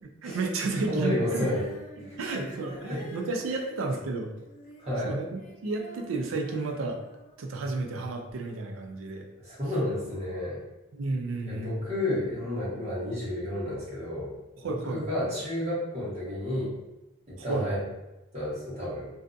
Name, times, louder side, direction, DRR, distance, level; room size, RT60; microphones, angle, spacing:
voice 1, 0.0-1.5 2.0-4.3 5.0-7.0 7.4-9.3 10.9-11.8 14.6-15.0 17.4-17.7, right 3 dB, 80° right, 3 dB, 0.4 m, -32 dB
voice 2, 0.9-1.6 2.0-2.6 2.9-3.0 4.8-5.2 9.4-10.6 11.5-14.3 14.6-16.7 17.3-17.8 18.3-19.1, left 1 dB, 30° right, -9 dB, 1.0 m, -31 dB
Female singing, 1.2-7.6 8.3-8.4, equal, 40° left, 0.4 m, -48 dB
2.6 x 2.2 x 2.5 m, 0.99 s
head